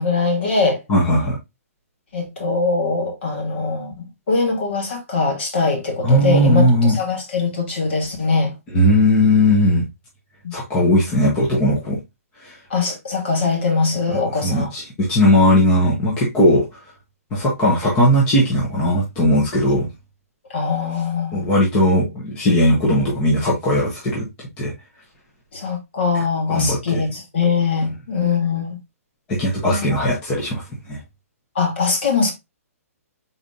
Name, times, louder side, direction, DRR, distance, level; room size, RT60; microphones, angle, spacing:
voice 1, 0.0-0.8 2.1-8.6 10.4-10.5 12.7-14.7 20.5-21.5 22.9-23.0 25.5-28.8 29.7-29.9 31.5-32.3, left 4 dB, 45° left, 1.7 m, -22 dB
voice 2, 0.9-1.4 6.0-7.0 8.7-9.8 10.5-12.0 12.4-12.5 14.1-16.6 17.3-19.9 21.3-24.3 24.6-24.7 26.5-27.0 29.3-30.6 30.9-31.0, equal, 15° left, 0.8 m, -17 dB
5.0 x 4.0 x 2.4 m
hypercardioid pair, 180°, 8 cm